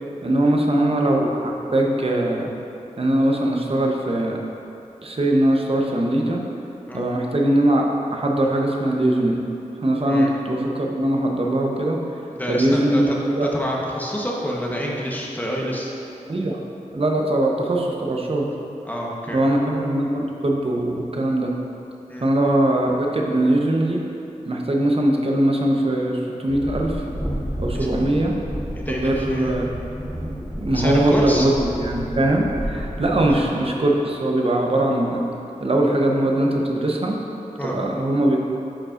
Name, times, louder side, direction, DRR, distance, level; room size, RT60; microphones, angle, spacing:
voice 1, 0.2-2.5 3.0-4.4 5.0-6.4 6.9-9.4 9.8-12.0 12.5-13.5 16.3-16.6 16.9-18.5 19.3-21.5 22.2-24.0 24.5-27.0 27.6-28.4 28.9-29.7 30.6-35.2 35.6-37.2 37.6-38.5, right 1 dB, 45° right, 0 dB, 0.9 m, -21 dB
voice 2, 12.4-13.2 13.4-15.9 18.8-19.4 22.1-22.3 27.7-27.9 28.8-29.5 30.7-31.5 37.6-37.7, equal, 10° left, -3 dB, 1.0 m, -27 dB
Train, 26.5-33.3, equal, 5° right, 1.1 m, -30 dB
8.5 x 5.4 x 2.5 m, 2.8 s
cardioid pair, 40°, 14 cm